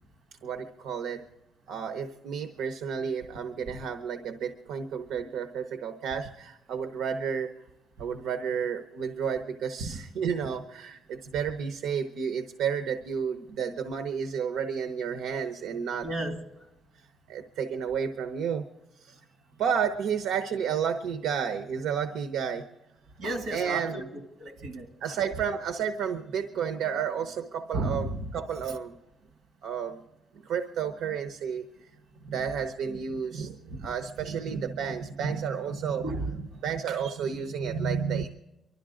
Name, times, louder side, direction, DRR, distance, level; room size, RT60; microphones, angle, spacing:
voice 1, 0.4-1.2 1.7-7.5 8.0-16.1 16.9-18.7 18.9-19.3 19.6-22.6 23.5-24.1 25.0-28.9 29.6-30.0 30.3-32.0 32.2-38.3, right 7 dB, 80° right, 0.9 m, -31 dB
voice 2, 16.0-16.4 23.2-24.0 24.4-24.9 27.7-28.3 33.7-33.8 36.0-36.3, right 2 dB, 65° right, 2.3 m, -32 dB
24.5 x 12.5 x 3.8 m
cardioid pair, 175°, 0 cm